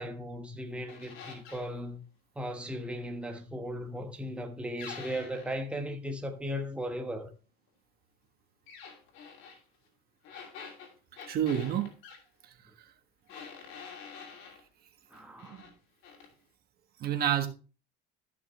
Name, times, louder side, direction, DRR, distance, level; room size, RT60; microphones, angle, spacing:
voice 1, 0.0-2.0 2.4-7.3 15.1-15.6, equal, 5° right, 1.2 m, -37 dB
sound 1, 0.9-1.7 4.8-5.6 8.7-9.6 10.2-12.2 13.3-14.6 15.1-15.7 16.0-16.3, left 6 dB, 75° left, 2.7 m, -47 dB
voice 2, 11.3-11.9 12.4-12.9 15.5-15.6 17.0-17.5, right 10 dB, 55° right, 1.4 m, -30 dB
13.5 x 5.9 x 3.1 m
cardioid pair, 120°, 19 cm